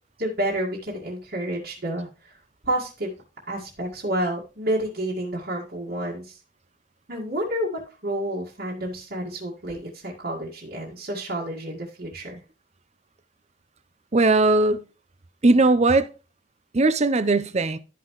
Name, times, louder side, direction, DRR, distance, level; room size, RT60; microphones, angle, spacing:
voice 1, 0.2-2.4 2.6-3.1 3.5-6.4 7.1-12.4, right 1 dB, 50° right, 1.9 m, -29 dB
voice 2, 14.1-14.8 15.4-16.1 16.7-17.8, right 2 dB, 35° right, 0.7 m, -19 dB
12.5 x 5.7 x 3.1 m
head